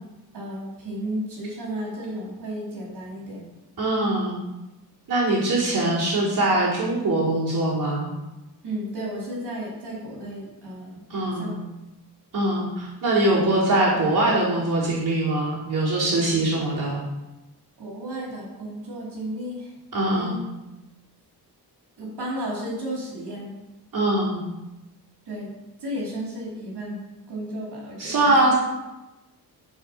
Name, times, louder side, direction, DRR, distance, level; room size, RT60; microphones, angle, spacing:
voice 1, 0.3-3.4 8.6-11.0 11.3-11.6 17.8-19.7 20.1-20.4 22.0-23.5 25.3-25.5 25.8-27.0 27.3-28.4, right 1 dB, 75° right, -5 dB, 4.4 m, -33 dB
voice 2, 3.8-4.4 5.1-8.1 11.1-11.6 12.3-17.0 19.9-20.4 23.9-24.5 28.0-28.5, right 2 dB, 55° right, -8 dB, 4.3 m, -22 dB
13.0 x 4.9 x 6.5 m, 1.0 s
wide cardioid pair, 130°, 40 cm